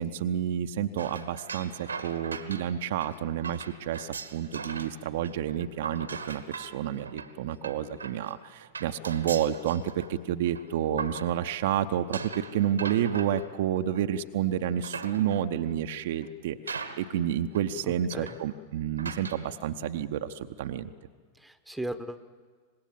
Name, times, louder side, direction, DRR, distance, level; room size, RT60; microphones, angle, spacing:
voice 1, 0.0-20.9, right 10 dB, 55° right, 8 dB, 0.8 m, -30 dB
sound 1, 1.0-5.0 5.2-11.7 12.1-14.2 14.6-15.6 16.2-16.3 16.7-17.3 17.6-17.7 18.1-18.5 19.0-19.5, right 5 dB, 75° right, 1.2 m, -40 dB
voice 2, 17.8-18.3 21.4-22.2, right 1 dB, ahead, 11 dB, 1.1 m, -37 dB
25.5 x 20.5 x 7.4 m, 1.5 s
figure-of-eight pair, 90°, 0 cm